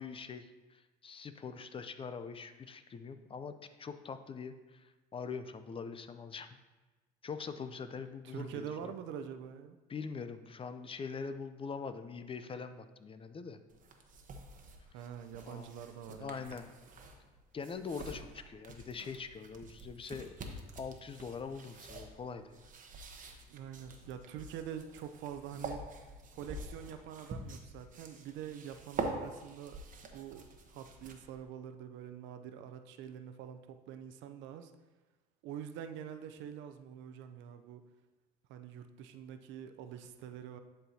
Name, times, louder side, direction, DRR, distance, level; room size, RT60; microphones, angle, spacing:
voice 1, 0.0-6.5 7.2-8.9 9.9-13.6 15.4-15.7 16.1-16.7 17.5-22.6 25.5-25.8, left 5 dB, 25° left, 10 dB, 0.5 m, -43 dB
voice 2, 8.2-9.8 14.9-16.6 23.5-26.0 26.3-29.8 30.1-34.7 35.4-37.8 38.5-40.6, right 9 dB, 65° right, 8 dB, 0.6 m, -45 dB
sound 1, 13.7-31.4, right 3 dB, 40° right, 1.0 m, -46 dB
11.0 x 4.5 x 2.8 m, 1.2 s
supercardioid pair, 85°, 20 cm